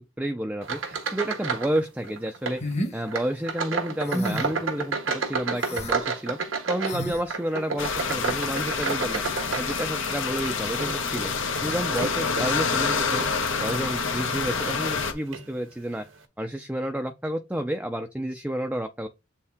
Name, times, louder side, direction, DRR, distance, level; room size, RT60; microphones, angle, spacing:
voice 1, 0.0-2.6 2.9-6.4 6.7-9.2 9.6-11.3 11.6-13.2 13.6-16.0 16.4-19.1, right 1 dB, 5° right, 0.6 m, -30 dB
sound 1, 0.6-1.8 2.0-2.6 3.1-10.2 10.7-12.5 13.1-13.4 13.9-14.0 14.9-15.0 15.3-15.5, right 4 dB, 85° right, 1.5 m, -31 dB
sound 2, 2.6-3.0 4.0-4.6 5.5-5.9 6.8-7.2, equal, 35° left, 1.4 m, -30 dB
sound 3, 7.8-15.1, left 5 dB, 75° left, 1.5 m, -27 dB
7.7 x 4.4 x 3.6 m
head